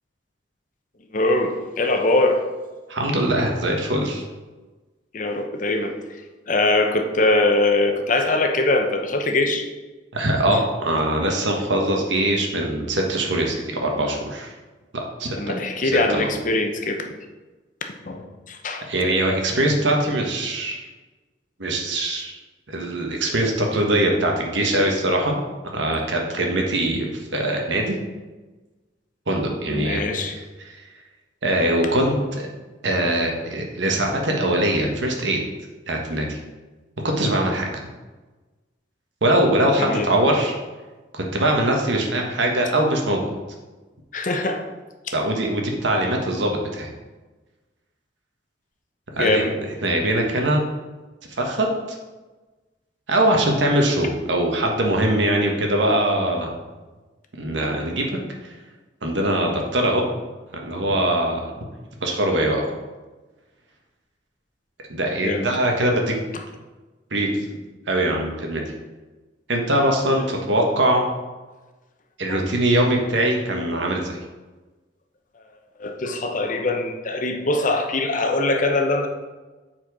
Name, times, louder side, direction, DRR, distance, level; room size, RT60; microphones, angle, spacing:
voice 1, 1.1-2.4 5.1-6.2 6.5-9.7 10.5-10.6 15.3-17.1 18.0-18.9 29.7-30.4 39.8-40.1 44.1-44.7 45.0-45.1 49.1-49.6 65.2-65.5 70.2-70.3 72.3-72.5 75.8-79.1, left 2 dB, 45° left, 4 dB, 0.8 m, -22 dB
voice 2, 2.9-4.2 10.1-14.5 14.9-15.6 15.8-16.3 18.9-20.8 21.6-22.4 22.7-25.4 25.7-28.0 29.3-30.2 31.4-32.5 32.8-35.4 35.9-36.4 37.0-37.8 39.2-40.6 41.1-43.3 45.1-46.9 49.2-49.4 49.8-50.6 51.4-52.0 53.1-56.5 57.4-58.1 58.4-58.5 59.0-60.0 60.6-61.5 62.0-62.6 64.9-66.2 67.1-67.3 67.9-68.6 69.5-71.1 72.2-74.2, right 1 dB, 85° right, 1 dB, 1.3 m, -22 dB
7.6 x 4.4 x 4.8 m, 1.2 s
head